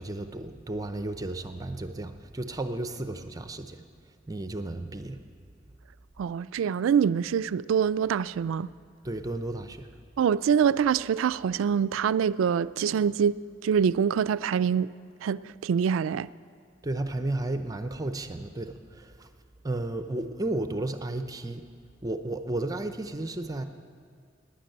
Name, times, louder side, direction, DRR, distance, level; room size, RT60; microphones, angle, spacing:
voice 1, 0.0-3.8 4.3-5.2 9.0-9.9 16.8-19.3 19.6-21.6 22.0-23.7, right 2 dB, 20° right, 0.5 m, -33 dB
voice 2, 6.2-8.7 10.2-14.9 15.2-16.3, right 7 dB, 90° right, 0.3 m, -25 dB
12.0 x 10.0 x 9.0 m
head